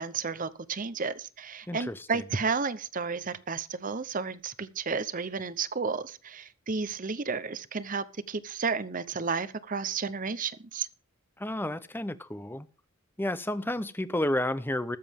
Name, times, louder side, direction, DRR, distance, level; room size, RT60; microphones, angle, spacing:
voice 1, 0.0-10.9, right 5 dB, 35° right, 0.8 m, -32 dB
voice 2, 1.7-2.2 11.4-12.7 13.2-15.0, left 1 dB, 10° left, 0.7 m, -31 dB
21.0 x 7.5 x 3.6 m
head